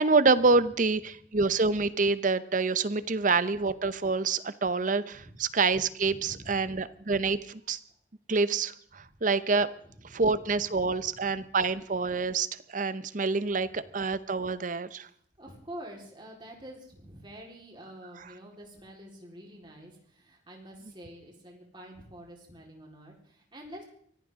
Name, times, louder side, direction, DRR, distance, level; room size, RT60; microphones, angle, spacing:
voice 1, 0.0-7.8 8.3-9.7 10.0-15.1 18.2-18.3, right 4 dB, 45° right, 14 dB, 0.8 m, -27 dB
voice 2, 6.0-6.6 10.0-10.3 10.6-11.1 15.4-23.8, right 1 dB, 25° right, -1 dB, 4.1 m, -47 dB
24.0 x 16.0 x 3.7 m, 0.62 s
head